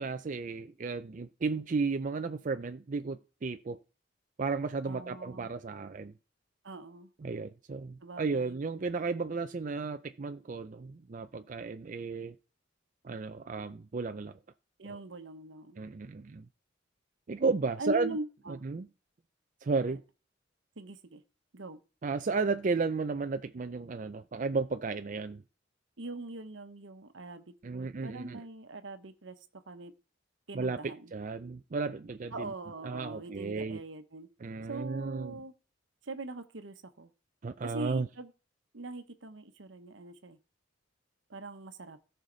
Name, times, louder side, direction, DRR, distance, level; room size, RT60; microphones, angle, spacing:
voice 1, 0.0-3.8 4.4-6.1 7.2-12.3 13.0-14.4 15.8-16.4 17.3-18.2 18.5-18.9 19.6-20.0 22.0-25.4 27.6-28.4 30.5-32.5 32.8-33.8 34.4-35.4 37.4-38.1, right 4 dB, 40° right, 0.4 m, -34 dB
voice 2, 4.8-5.5 6.6-7.1 8.0-8.6 14.8-15.8 17.8-18.6 19.9-20.0 20.8-21.2 21.5-21.8 26.0-29.9 30.5-31.1 32.3-34.3 34.7-35.5 36.1-37.1 37.6-38.3 38.7-40.4 41.3-42.0, right 2 dB, 75° right, 1.0 m, -42 dB
17.0 x 5.7 x 3.9 m
head